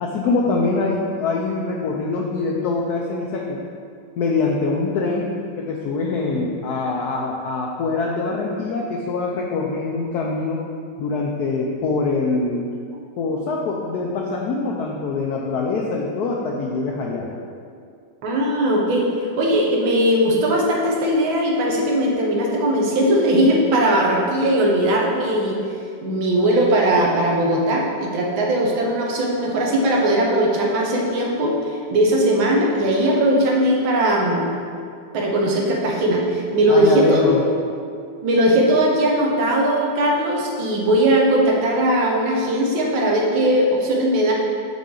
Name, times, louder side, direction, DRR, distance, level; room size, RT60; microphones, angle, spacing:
voice 1, 0.0-3.6 4.2-10.6 11.0-12.7 13.2-17.3 36.7-37.4, left 3 dB, 75° left, -1 dB, 0.9 m, -24 dB
voice 2, 18.2-25.6 26.0-34.5 35.1-37.2 38.2-44.3, right 1 dB, 85° right, -2 dB, 1.8 m, -19 dB
6.1 x 5.6 x 3.8 m, 2.4 s
omnidirectional pair, 2.1 m